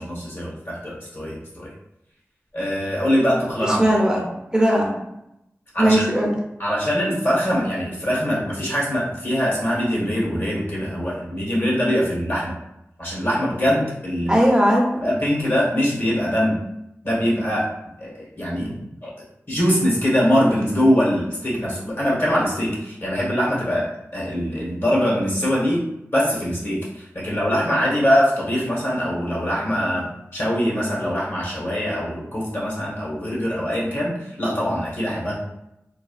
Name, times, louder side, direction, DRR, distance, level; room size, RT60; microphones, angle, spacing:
voice 1, 0.0-1.7 2.5-3.8 5.7-6.0 6.6-12.5 13.0-14.4 15.0-16.6 17.0-17.7 18.0-18.7 19.0-19.1 19.5-25.8 26.1-30.1 30.3-35.4, equal, 50° left, -6 dB, 1.2 m, -22 dB
voice 2, 3.6-4.2 4.5-5.0 5.8-6.3 14.3-14.9 18.5-18.8, right 1 dB, 15° right, -2 dB, 0.5 m, -18 dB
3.3 x 2.3 x 2.3 m, 0.84 s
wide cardioid pair, 65°, 5 cm